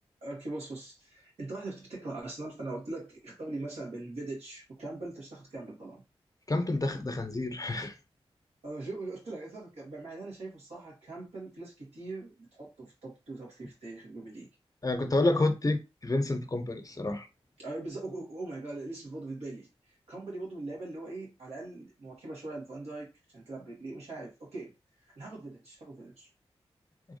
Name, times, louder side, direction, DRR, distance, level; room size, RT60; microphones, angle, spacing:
voice 1, 0.2-6.0 8.6-14.5 17.6-24.7 25.2-26.3, right 2 dB, 85° right, 2.0 m, -41 dB
voice 2, 6.5-7.9 14.8-17.3, left 2 dB, 35° left, 0.8 m, -29 dB
3.5 x 2.9 x 2.6 m
cardioid pair, 45°, 11 cm